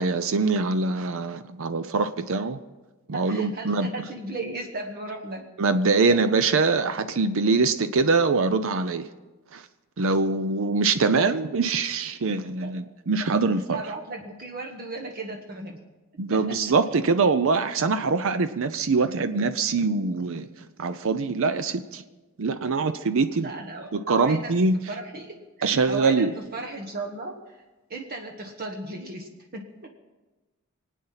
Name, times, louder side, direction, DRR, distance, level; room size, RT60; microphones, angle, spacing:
voice 1, 0.0-2.6 3.1-3.9 5.6-9.1 9.5-9.6 10.0-13.8 16.2-20.5 20.8-22.0 22.4-23.5 23.9-24.7 25.6-26.3, right 4 dB, 65° right, 11 dB, 0.6 m, -23 dB
voice 2, 3.1-5.4 6.1-6.2 12.6-12.8 13.7-15.8 16.3-16.6 23.4-24.6 24.9-27.6 27.9-29.9, right 2 dB, 45° right, 2 dB, 1.2 m, -36 dB
24.5 x 9.2 x 5.7 m, 1.2 s
head